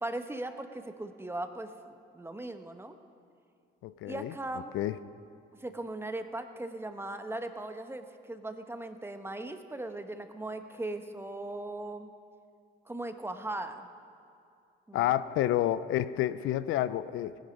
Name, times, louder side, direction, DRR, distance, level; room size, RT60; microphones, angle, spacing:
voice 1, 0.0-3.0 4.0-4.7 5.6-12.1 12.9-13.9 14.9-15.2, right 2 dB, 10° right, 7 dB, 1.0 m, -38 dB
voice 2, 3.8-4.3 4.7-5.0 14.9-17.4, left 13 dB, 85° left, 15 dB, 0.5 m, -29 dB
18.0 x 10.5 x 5.3 m, 2.5 s
cardioid pair, 90°, 20 cm